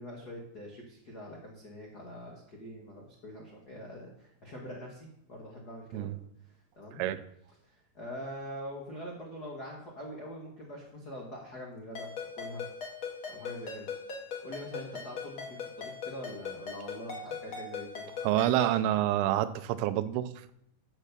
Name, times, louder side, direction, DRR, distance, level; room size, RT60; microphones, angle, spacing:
voice 1, 0.0-6.1 6.4-7.0 7.6-12.1 12.4-12.6 13.3-13.9 14.4-18.1, equal, 75° left, -1 dB, 0.9 m, -44 dB
Ringtone, 11.9-18.8, left 5 dB, 45° left, 2.0 m, -40 dB
voice 2, 18.2-20.5, right 13 dB, 90° right, 13 dB, 2.6 m, -28 dB
7.4 x 7.3 x 6.6 m, 0.75 s
omnidirectional pair, 4.4 m